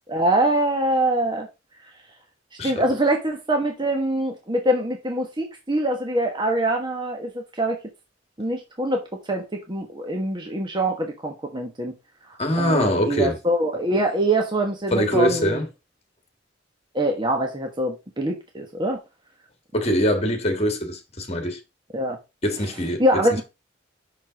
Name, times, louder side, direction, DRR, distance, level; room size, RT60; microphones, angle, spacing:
voice 1, 0.1-1.5 2.6-7.8 8.4-11.9 12.6-15.6 16.9-19.0 21.9-22.2 23.0-23.4, right 1 dB, 25° right, 1.3 m, -24 dB
voice 2, 12.4-13.4 14.9-15.7 19.7-21.6 22.4-23.2, equal, 35° left, 1.6 m, -23 dB
6.1 x 5.4 x 5.0 m
head